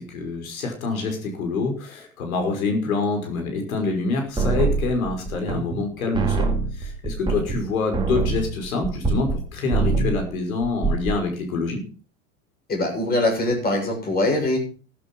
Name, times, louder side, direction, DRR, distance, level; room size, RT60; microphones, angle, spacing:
voice 1, 0.0-11.8, left 3 dB, 85° left, 4 dB, 5.7 m, -26 dB
sound 1, 4.4-5.9 6.1-9.4 9.7-10.3 10.6-11.2, right 4 dB, 10° right, 2.7 m, -24 dB
voice 2, 12.7-14.6, left 1 dB, 20° left, 2 dB, 6.9 m, -22 dB
13.5 x 11.0 x 5.5 m, 0.36 s
supercardioid pair, 135°, 41 cm